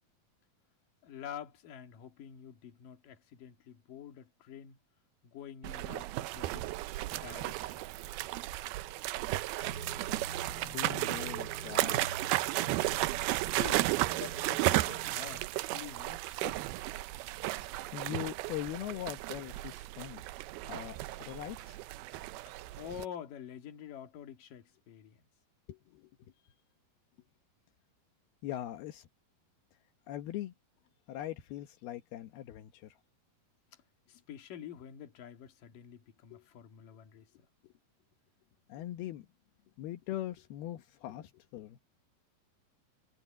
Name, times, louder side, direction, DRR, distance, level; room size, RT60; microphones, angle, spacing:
voice 1, 1.0-4.8 5.2-6.7 7.1-7.9 13.4-15.5 15.7-16.6 22.8-25.2 34.1-37.3, left 9 dB, 65° left, 3.5 m, -47 dB
sound 1, 5.6-23.1, right 17 dB, 85° right, 2.6 m, -34 dB
sound 2, 9.6-15.4, right 4 dB, 35° right, 4.8 m, -47 dB
voice 2, 10.7-12.4 17.4-20.2 20.6-21.8 25.7-26.1 28.4-29.1 30.1-30.5 31.1-32.9 36.3-36.5 37.6-37.7 38.7-39.3 39.8-41.8, left 13 dB, 80° left, 3.1 m, -41 dB
omnidirectional pair, 4.4 m